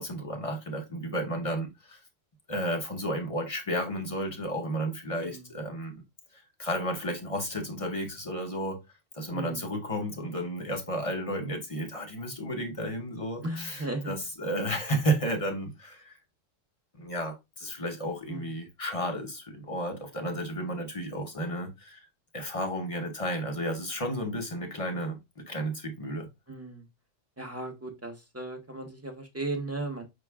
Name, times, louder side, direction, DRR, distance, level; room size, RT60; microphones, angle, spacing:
voice 1, 0.0-2.0 2.5-6.0 6.3-8.8 9.1-16.2 16.9-22.0 22.3-26.3, equal, 35° left, 0.7 m, -32 dB
voice 2, 5.2-5.5 9.3-9.7 13.4-14.1 18.3-18.5 26.5-26.9 27.4-30.0, right 2 dB, 15° right, 0.6 m, -36 dB
5.2 x 2.3 x 3.4 m
omnidirectional pair, 1.3 m